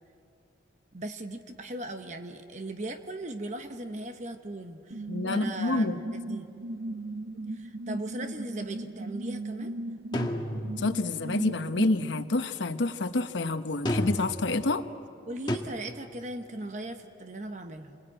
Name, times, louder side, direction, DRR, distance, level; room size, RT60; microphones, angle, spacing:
voice 1, 0.9-6.5 7.5-9.7 15.2-18.0, right 1 dB, 40° right, 7 dB, 1.0 m, -38 dB
sound 1, 4.9-12.3, right 1 dB, 85° right, 0.7 m, -37 dB
voice 2, 5.1-6.0 10.8-14.9, left 2 dB, 85° left, 8 dB, 1.0 m, -28 dB
sound 2, 10.1-11.1 13.8-14.5 15.5-15.6, equal, 25° left, 1.5 m, -30 dB
27.0 x 20.5 x 9.0 m, 2.6 s
head